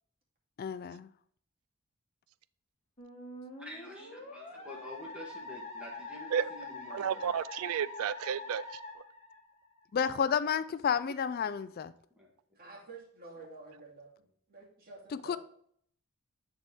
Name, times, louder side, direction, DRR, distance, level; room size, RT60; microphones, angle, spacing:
voice 1, 0.6-1.1 9.9-11.9 15.2-15.4, left 7 dB, 45° left, 0.3 m, -31 dB
Musical instrument, 3.0-9.8, left 2 dB, 30° left, 1.6 m, -45 dB
voice 2, 3.6-7.3 12.2-12.3, left 1 dB, 5° right, 1.7 m, -48 dB
voice 3, 6.9-9.0, right 8 dB, 80° right, 0.3 m, -33 dB
voice 4, 12.6-15.4, right 3 dB, 45° right, 2.4 m, -50 dB
10.5 x 4.1 x 3.5 m
head